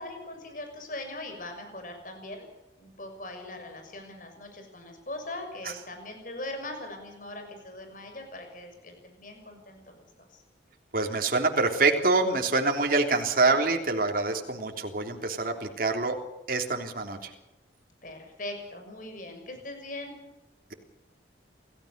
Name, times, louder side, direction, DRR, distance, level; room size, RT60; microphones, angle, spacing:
voice 1, 0.0-2.5 2.8-10.4 18.0-20.2, left 1 dB, 45° left, 5 dB, 6.4 m, -41 dB
voice 2, 10.9-16.2 16.5-17.3, right 3 dB, 50° right, 3 dB, 3.4 m, -26 dB
28.5 x 16.5 x 6.7 m, 0.95 s
head